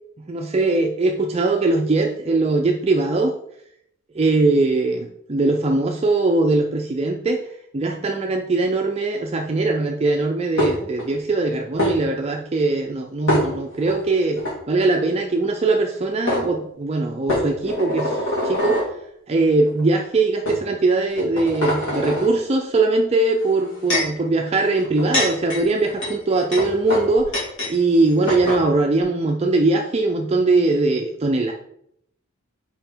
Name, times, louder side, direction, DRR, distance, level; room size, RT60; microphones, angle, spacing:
voice 1, 0.3-3.3 4.1-18.8 19.3-27.3 27.7-31.5, right 3 dB, 30° right, 2 dB, 0.4 m, -21 dB
sound 1, 10.6-11.1 11.8-11.9 13.3-13.9 14.4-14.5 15.8-15.9 16.3-16.4 17.3-18.9 19.7-19.8 20.5-20.6 21.1-22.3 23.4-24.2 24.8-27.7 28.0-28.1 28.3-28.6, left 1 dB, 55° left, 2.7 m, -24 dB
5.5 x 4.8 x 4.4 m, 0.74 s
head